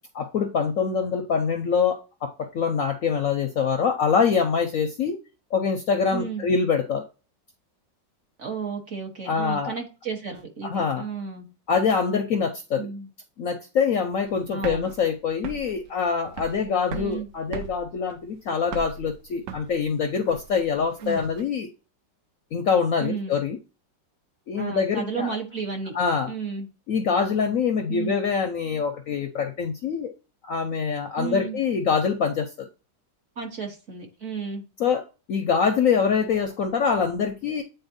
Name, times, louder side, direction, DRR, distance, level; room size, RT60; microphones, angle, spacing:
voice 1, 0.1-5.2 5.5-7.1 9.3-9.7 10.6-11.1 11.7-12.9 13.4-21.7 22.5-23.6 24.5-25.4 25.9-26.3 26.9-30.1 30.4-32.7 34.8-37.6, left 6 dB, 65° left, 6 dB, 0.9 m, -24 dB
voice 2, 6.1-6.4 8.4-11.5 12.8-13.1 14.5-14.9 16.9-17.3 21.0-21.3 23.0-23.4 24.6-26.0 26.3-26.7 27.9-28.1 31.2-31.6 33.4-34.6, right 5 dB, 45° right, 2 dB, 1.4 m, -33 dB
sound 1, 14.1-21.4, right 7 dB, 75° right, 1.2 m, -39 dB
8.8 x 4.1 x 2.6 m, 0.32 s
omnidirectional pair, 2.0 m